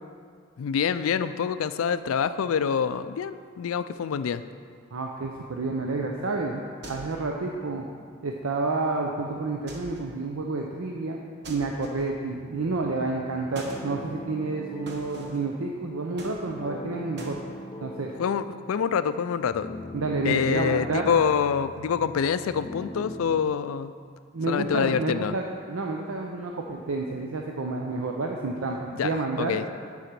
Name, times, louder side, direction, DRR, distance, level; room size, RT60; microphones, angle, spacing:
voice 1, 0.6-4.4 18.2-19.8 20.2-23.9 24.5-25.3 29.0-29.1 29.4-29.6, left 7 dB, 85° left, 13 dB, 0.4 m, -26 dB
voice 2, 4.9-6.6 6.9-7.9 8.2-11.2 11.5-17.4 17.8-18.1 19.9-21.1 24.3-29.6, right 3 dB, 85° right, 1 dB, 0.6 m, -29 dB
sound 1, 6.8-7.4 9.7-10.2 11.4-12.3 13.5-13.9 14.9-15.5 16.2-16.8 17.2-17.4, right 2 dB, 55° right, 1.1 m, -42 dB
sound 2, 12.4-23.4, equal, 20° left, 0.5 m, -41 dB
9.6 x 4.9 x 5.9 m, 2.1 s
head